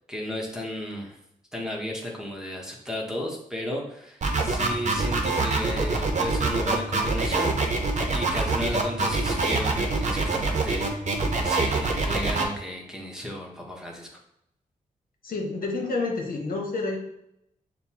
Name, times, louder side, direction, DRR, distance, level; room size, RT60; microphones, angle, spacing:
voice 1, 0.1-1.2 1.5-7.6 8.1-14.1, left 1 dB, 5° right, -1 dB, 1.1 m, -34 dB
sound 1, 4.2-12.4, right 3 dB, 50° right, 0.8 m, -25 dB
voice 2, 15.2-17.0, left 3 dB, 70° left, 0 dB, 1.1 m, -29 dB
6.7 x 2.2 x 2.9 m, 0.79 s
cardioid pair, 80°, 15 cm